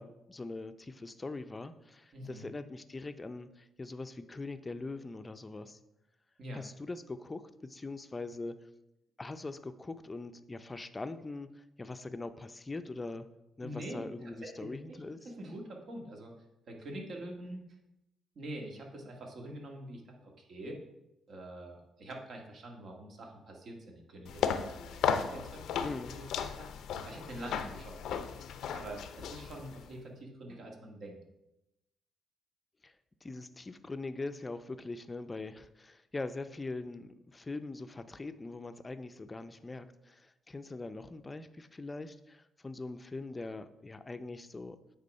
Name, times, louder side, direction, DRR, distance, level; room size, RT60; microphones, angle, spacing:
voice 1, 0.0-5.8 6.5-8.6 9.2-13.3 13.6-15.2 25.8-26.2 32.8-32.9 33.2-44.8, left 3 dB, 20° left, 10 dB, 0.5 m, -42 dB
voice 2, 2.1-2.5 6.4-6.6 13.6-16.3 16.7-17.6 18.4-20.8 21.3-26.7 27.0-31.2, right 1 dB, 60° right, 0 dB, 1.7 m, -45 dB
sound 1, 24.3-29.9, left 7 dB, 80° left, 0.6 m, -35 dB
8.4 x 3.7 x 5.3 m, 0.89 s
cardioid pair, 90°, 0 cm